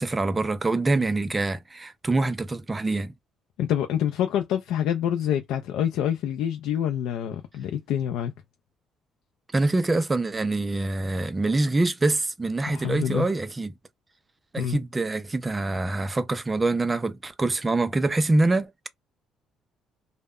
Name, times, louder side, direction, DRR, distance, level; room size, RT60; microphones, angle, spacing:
voice 1, 0.0-3.1 9.5-13.7 14.5-18.9, right 2 dB, 15° right, 0.3 m, -25 dB
voice 2, 3.6-8.3 12.7-13.3 14.6-14.8, left 10 dB, 80° left, 0.3 m, -26 dB
2.1 x 2.0 x 3.5 m
cardioid pair, 150°, 0 cm